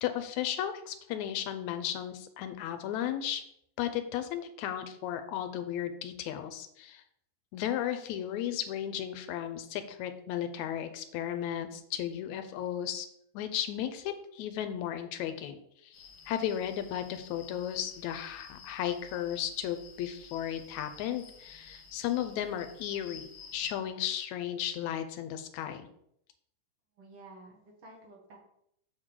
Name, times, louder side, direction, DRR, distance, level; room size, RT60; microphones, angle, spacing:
voice 1, 0.0-3.4 3.8-7.0 7.5-13.1 13.3-25.9, left 10 dB, 80° left, 9 dB, 2.0 m, -35 dB
sound 1, 15.9-23.7, left 5 dB, 50° left, 1.3 m, -52 dB
voice 2, 27.0-28.4, right 2 dB, 55° right, -2 dB, 2.2 m, -52 dB
6.8 x 6.3 x 3.7 m, 0.73 s
omnidirectional pair, 3.3 m